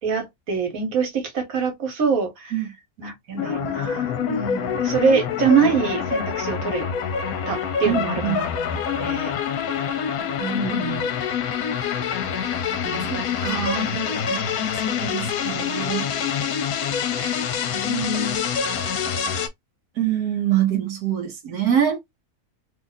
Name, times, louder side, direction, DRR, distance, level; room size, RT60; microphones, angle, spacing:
voice 1, 0.0-2.5 3.0-6.9 7.5-8.5 9.0-9.3 10.4-11.1 12.8-13.1 15.2-15.3 17.1-18.4 21.5-21.6, right 5 dB, 65° right, 1.4 m, -25 dB
sound 1, 3.4-19.5, left 7 dB, 70° left, 1.0 m, -26 dB
voice 2, 7.8-8.5 13.1-16.1 20.0-22.0, right 10 dB, 80° right, 1.2 m, -25 dB
2.8 x 2.4 x 3.9 m
omnidirectional pair, 1.7 m